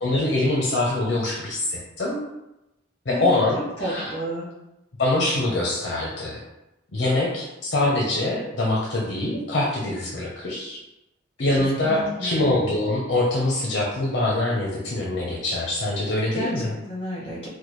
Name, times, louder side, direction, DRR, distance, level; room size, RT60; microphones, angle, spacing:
voice 1, 0.0-2.2 3.1-4.1 5.0-6.4 6.9-10.8 11.4-16.7, left 2 dB, 65° left, -3 dB, 0.6 m, -24 dB
voice 2, 3.1-3.4 3.8-4.5 11.8-12.5 16.3-17.5, equal, 30° left, -6 dB, 1.4 m, -31 dB
4.1 x 2.2 x 3.1 m, 0.93 s
head